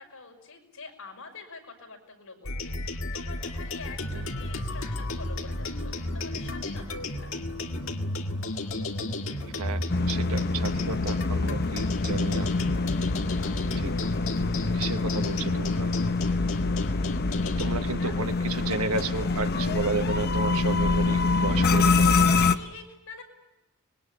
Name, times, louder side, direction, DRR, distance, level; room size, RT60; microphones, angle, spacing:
voice 1, 0.0-7.4 17.4-18.1 22.3-23.2, left 4 dB, 80° left, 1 dB, 5.6 m, -46 dB
sound 1, 2.4-17.8, left 2 dB, 65° left, 2.0 m, -32 dB
sound 2, 3.4-22.0, equal, ahead, 3.6 m, -50 dB
voice 2, 9.6-12.5 13.8-13.9 14.7-15.9 17.6-22.3, right 4 dB, 85° right, 9 dB, 1.3 m, -33 dB
sound 3, 9.9-22.6, left 3 dB, 45° left, 0.8 m, -26 dB
25.0 x 21.0 x 9.6 m, 0.96 s
head